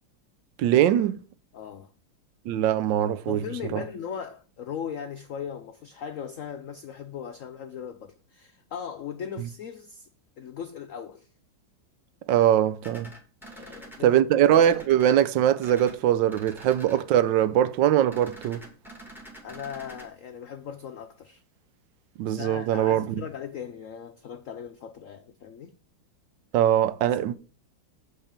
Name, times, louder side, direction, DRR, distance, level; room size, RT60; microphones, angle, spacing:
voice 1, 0.6-1.2 2.5-3.4 3.7-3.8 12.3-13.1 14.0-18.6 22.2-23.2 26.5-27.3, right 11 dB, 75° right, 1.2 m, -22 dB
voice 2, 1.5-1.9 3.3-10.1 10.4-11.3 13.5-14.2 19.4-21.4 22.3-25.7 27.1-27.2, left 8 dB, 80° left, 0.7 m, -38 dB
sound 1, 12.8-14.0 14.5-15.1 15.6-16.0 16.3-17.0 18.1-20.1, right 1 dB, ahead, 2.2 m, -46 dB
8.7 x 4.1 x 7.2 m
omnidirectional pair, 2.1 m